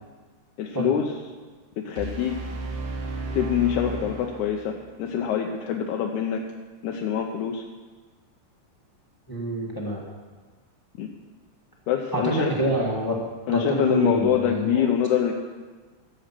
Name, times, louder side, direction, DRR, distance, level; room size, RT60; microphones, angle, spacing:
voice 1, 0.6-1.1 1.8-2.4 3.3-6.4 6.8-7.6 11.0-11.1 11.9-12.5 13.5-15.3, left 9 dB, 75° left, 1 dB, 2.1 m, -25 dB
sound 1, 2.0-5.0, right 3 dB, 90° right, 2.9 m, -34 dB
voice 2, 9.3-10.0 12.1-13.2 13.5-14.9, right 1 dB, 15° left, -2 dB, 0.9 m, -26 dB
15.0 x 7.9 x 5.9 m, 1.4 s
omnidirectional pair, 3.7 m